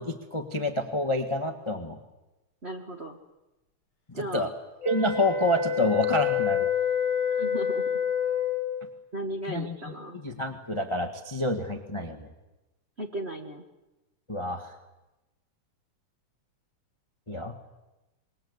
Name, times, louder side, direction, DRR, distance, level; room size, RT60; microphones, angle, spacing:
voice 1, 0.0-2.0 4.1-4.5 4.8-6.7 9.5-9.8 10.2-12.3 14.3-14.8 17.3-17.6, left 1 dB, 20° left, 6 dB, 0.7 m, -28 dB
voice 2, 2.6-3.2 4.1-4.5 7.3-8.0 9.1-10.2 13.0-13.6, right 1 dB, 30° right, 2 dB, 1.2 m, -36 dB
sound 1, 4.8-8.7, left 7 dB, 55° left, 7.3 m, -27 dB
26.5 x 21.5 x 8.1 m, 1.0 s
omnidirectional pair, 3.4 m